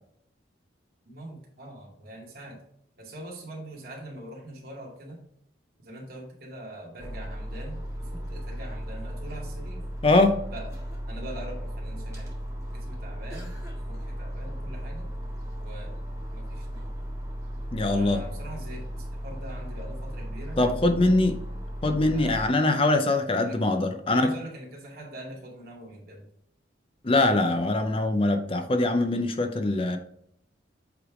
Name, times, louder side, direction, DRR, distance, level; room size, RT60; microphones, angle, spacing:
voice 1, 1.0-2.6 3.0-5.2 5.8-9.8 10.5-10.8 11.1-12.3 12.7-15.1 15.6-16.0 16.3-16.9 17.9-20.6 22.1-22.7 23.4-23.6 24.0-26.3, right 1 dB, 50° right, -2 dB, 2.3 m, -43 dB
sound 1, 7.0-22.5, equal, 15° right, 1.6 m, -36 dB
voice 2, 10.0-10.4 17.7-18.2 20.6-21.4 21.8-24.3 27.0-30.0, left 2 dB, 30° left, 6 dB, 0.5 m, -23 dB
8.1 x 3.3 x 4.9 m, 0.71 s
head